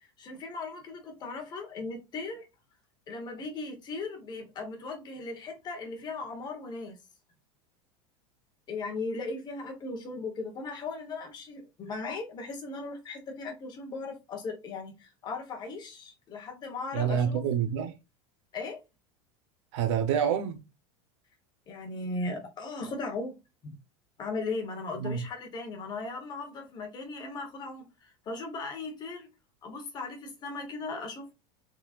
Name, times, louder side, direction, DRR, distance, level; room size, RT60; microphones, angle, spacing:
voice 1, 0.2-2.5 3.1-7.0 8.7-17.4 18.5-18.8 21.7-23.3 23.6-23.8 24.2-29.3 29.6-31.3, left 3 dB, 25° left, 1.2 m, -37 dB
voice 2, 16.9-17.9 19.7-20.6 25.0-25.2, right 8 dB, 70° right, 0.9 m, -27 dB
3.8 x 3.2 x 2.4 m
supercardioid pair, 160°, 16 cm